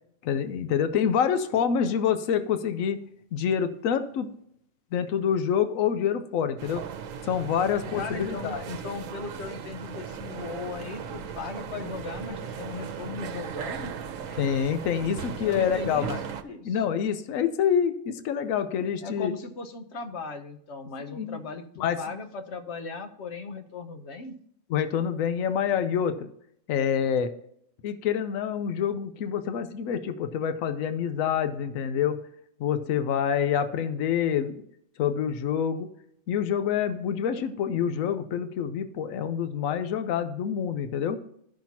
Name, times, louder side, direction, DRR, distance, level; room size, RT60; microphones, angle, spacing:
voice 1, 0.2-3.0 3.3-4.3 4.9-6.9 7.2-8.6 14.4-16.2 16.6-19.3 21.1-21.4 21.8-22.0 24.7-26.3 26.7-27.3 27.8-32.2 32.6-34.6 35.0-35.9 36.3-41.2, left 8 dB, 85° left, 10 dB, 1.0 m, -27 dB
sound 1, 6.6-16.4, right 7 dB, 75° right, 1.1 m, -37 dB
voice 2, 8.0-13.9 14.3-14.4 15.4-16.1 16.4-16.8 19.0-24.3, left 4 dB, 60° left, 7 dB, 1.1 m, -38 dB
14.0 x 5.8 x 2.9 m, 0.71 s
omnidirectional pair, 1.4 m